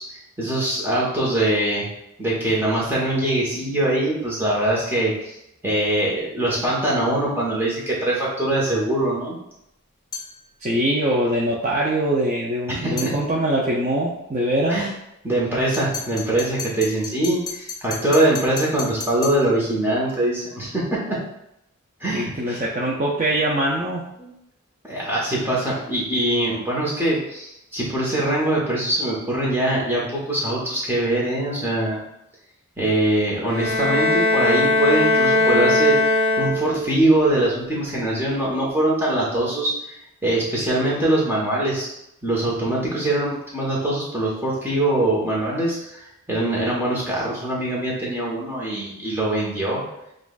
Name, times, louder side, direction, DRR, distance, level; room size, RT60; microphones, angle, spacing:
voice 1, 0.0-1.9 2.2-5.3 5.6-9.4 12.7-13.1 14.7-14.9 15.2-21.2 22.0-22.6 24.2-24.3 24.9-32.0 32.8-39.9 40.2-41.9 42.2-49.8, right 1 dB, 10° right, -5 dB, 1.1 m, -23 dB
sound 1, 10.1-10.4 13.0-13.2 15.7-19.5, left 4 dB, 15° left, 1.0 m, -33 dB
voice 2, 10.6-14.8 22.1-24.0, right 1 dB, 30° right, -4 dB, 0.5 m, -23 dB
Bowed string instrument, 33.5-37.0, left 2 dB, 55° left, 1.2 m, -19 dB
7.1 x 2.5 x 2.4 m, 0.82 s
head